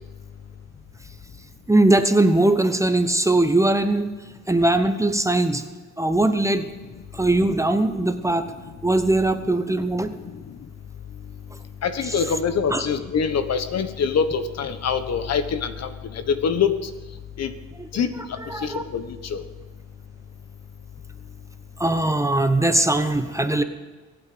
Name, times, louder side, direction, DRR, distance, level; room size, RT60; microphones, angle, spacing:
voice 1, 1.7-4.1 4.5-5.6 6.0-6.7 7.1-8.4 8.8-10.2 12.7-12.8 17.8-17.9 18.5-18.8 21.8-23.6, right 2 dB, 10° right, 9 dB, 1.0 m, -20 dB
voice 2, 10.2-10.5 11.8-16.7 17.4-17.5 17.9-18.1 18.6-19.4, left 6 dB, 60° left, 10 dB, 1.4 m, -25 dB
23.5 x 8.9 x 5.2 m, 1.3 s
cardioid pair, 90°, 30 cm